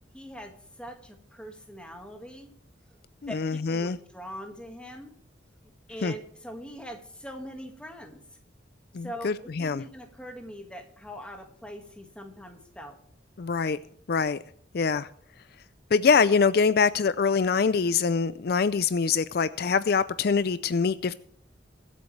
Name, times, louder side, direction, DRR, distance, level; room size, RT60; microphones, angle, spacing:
voice 1, 0.1-2.5 3.3-5.1 5.9-8.2 9.0-13.0, equal, 5° left, 1.8 m, -42 dB
voice 2, 3.2-4.0 6.0-6.1 8.9-9.8 13.4-13.8 14.1-14.4 14.7-15.1 15.9-21.1, left 5 dB, 55° left, 0.4 m, -24 dB
22.5 x 8.4 x 3.3 m
head